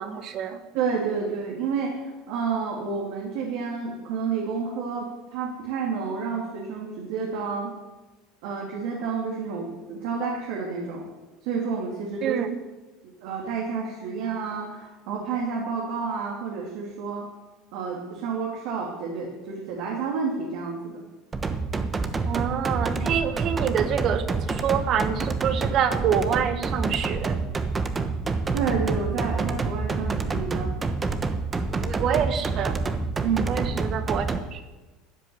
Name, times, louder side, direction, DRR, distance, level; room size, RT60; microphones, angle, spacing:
voice 1, 0.0-0.6 12.2-12.5 22.2-27.4 31.7-32.8 33.5-34.2 34.5-34.6, right 8 dB, 50° right, 10 dB, 1.5 m, -26 dB
voice 2, 0.7-7.7 8.4-11.0 11.4-12.4 13.0-17.2 17.7-21.1 28.5-30.7 33.2-33.5, right 5 dB, 75° right, -1 dB, 2.8 m, -30 dB
sound 1, 21.3-34.4, right 4 dB, 20° right, 1.2 m, -27 dB
13.0 x 7.3 x 9.6 m, 1.2 s
supercardioid pair, 105°, 0 cm